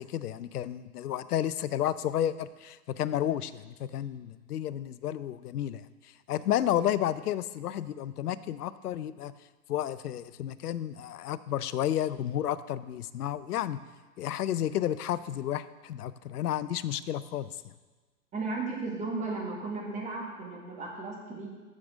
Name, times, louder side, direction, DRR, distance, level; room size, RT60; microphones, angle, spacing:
voice 1, 0.0-5.8 6.3-9.3 9.7-13.8 14.2-17.5, left 11 dB, 75° left, 15 dB, 0.6 m, -31 dB
voice 2, 18.3-21.5, right 3 dB, 15° right, -1 dB, 1.6 m, -35 dB
14.5 x 6.6 x 3.6 m, 1.3 s
hypercardioid pair, 140°, 47 cm